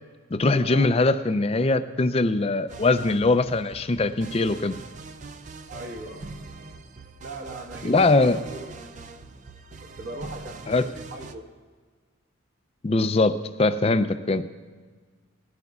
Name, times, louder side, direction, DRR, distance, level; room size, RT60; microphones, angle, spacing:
voice 1, 0.3-4.7 7.8-8.4 10.7-10.8 12.8-14.4, left 3 dB, 30° left, 11 dB, 0.4 m, -22 dB
sound 1, 2.7-11.3, right 3 dB, 35° right, 0.4 m, -43 dB
voice 2, 5.7-6.3 7.2-8.8 10.0-11.4, right 2 dB, 50° right, 2 dB, 1.4 m, -39 dB
19.5 x 13.0 x 2.4 m, 1.5 s
head